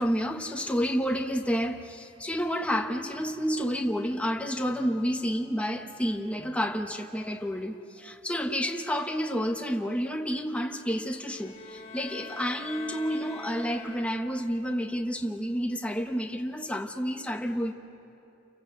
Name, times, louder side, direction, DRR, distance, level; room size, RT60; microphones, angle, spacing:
voice 1, 0.0-17.7, equal, 5° left, 1.1 m, -30 dB
sound 1, 11.3-14.5, left 3 dB, 30° left, 2.9 m, -44 dB
29.0 x 25.0 x 7.9 m
head